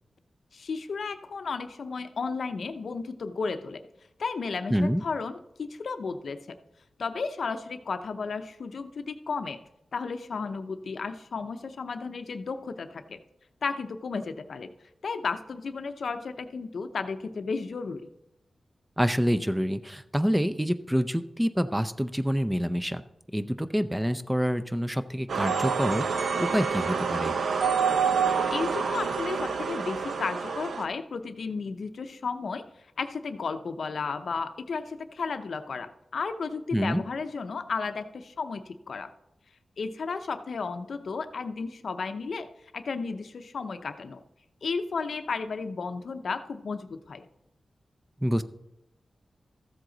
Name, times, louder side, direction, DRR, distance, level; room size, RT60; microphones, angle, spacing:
voice 1, 0.5-3.8 4.2-6.4 7.0-9.6 9.9-13.2 13.6-14.7 15.0-18.1 28.5-32.6 33.0-39.1 39.8-42.5 42.7-44.2 44.6-47.3, left 4 dB, 70° left, 9 dB, 0.6 m, -33 dB
voice 2, 4.7-5.0 19.0-23.0 23.3-27.4 36.7-37.0 48.2-48.4, equal, 5° right, 11 dB, 0.5 m, -27 dB
sound 1, 25.3-30.8, right 6 dB, 80° right, 0.7 m, -27 dB
14.0 x 7.7 x 3.9 m, 0.87 s
wide cardioid pair, 110°, 0 cm